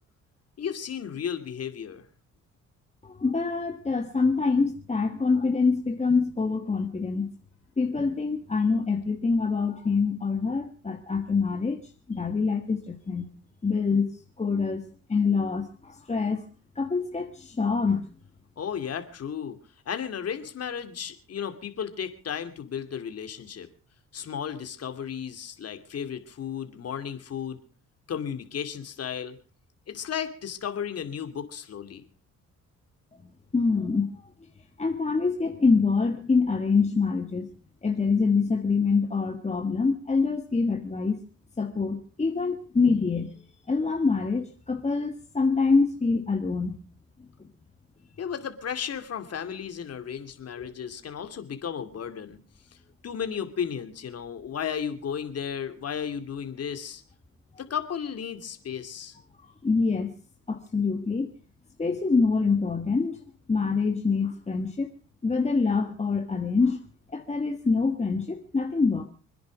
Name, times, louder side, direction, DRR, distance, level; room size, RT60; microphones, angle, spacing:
voice 1, 0.6-2.0 18.6-19.6 19.9-23.7 24.1-27.6 28.1-29.4 29.9-32.0 48.2-52.4 53.0-57.0 57.6-59.2, left 8 dB, 55° left, 8 dB, 2.5 m, -34 dB
voice 2, 3.0-7.3 7.8-13.3 13.6-14.1 14.4-14.8 15.1-16.4 16.7-18.1 33.5-34.3 34.8-37.5 37.8-41.2 41.6-43.3 43.7-46.8 50.6-50.7 59.6-60.1 60.5-61.3 61.8-64.9 65.2-66.8 67.1-69.1, left 4 dB, 20° left, 5 dB, 1.6 m, -25 dB
25.5 x 10.5 x 5.1 m, 0.39 s
cardioid pair, 90°, 30 cm